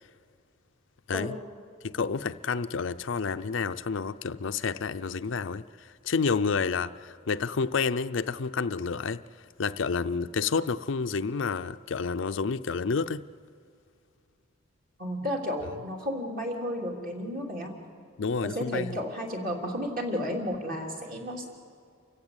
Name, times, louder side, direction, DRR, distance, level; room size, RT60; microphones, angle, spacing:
voice 1, 1.8-5.6 6.0-9.2 9.6-13.3 18.2-19.0, left 5 dB, 65° left, 11 dB, 0.5 m, -29 dB
voice 2, 15.0-17.7 18.4-21.5, equal, 45° right, 0 dB, 3.3 m, -32 dB
28.5 x 16.0 x 8.1 m, 2.4 s
head